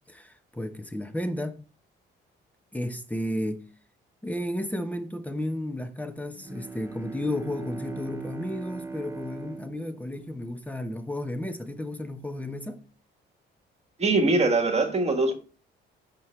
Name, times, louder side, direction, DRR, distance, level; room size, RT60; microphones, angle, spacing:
voice 1, 0.1-1.6 2.7-3.6 4.2-12.8, left 1 dB, 5° left, 0.9 m, -33 dB
Bowed string instrument, 6.3-11.2, right 3 dB, 15° right, 0.6 m, -40 dB
voice 2, 14.0-15.3, right 3 dB, 30° right, 1.5 m, -22 dB
6.0 x 5.4 x 3.2 m
cardioid pair, 90°, 20 cm